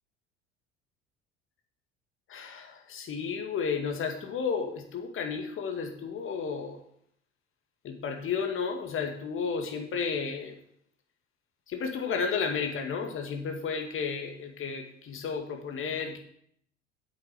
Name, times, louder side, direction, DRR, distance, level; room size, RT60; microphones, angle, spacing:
voice 1, 2.3-6.8 7.8-10.6 11.7-16.2, left 5 dB, 40° left, 4 dB, 2.1 m, -32 dB
8.9 x 7.9 x 6.2 m, 0.69 s
figure-of-eight pair, 65°, 33 cm